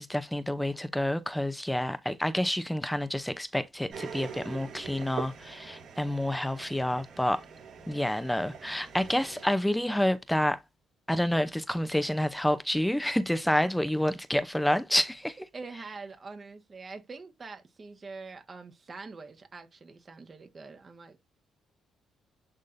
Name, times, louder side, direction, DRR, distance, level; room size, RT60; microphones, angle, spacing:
voice 1, 0.0-7.4 7.9-10.6 11.1-15.4, left 1 dB, 5° left, 0.7 m, -28 dB
sound 1, 3.9-9.5, right 6 dB, 70° right, 5.3 m, -43 dB
voice 2, 15.5-21.2, right 4 dB, 35° right, 1.6 m, -44 dB
10.5 x 3.7 x 2.7 m
cardioid pair, 90°, 0 cm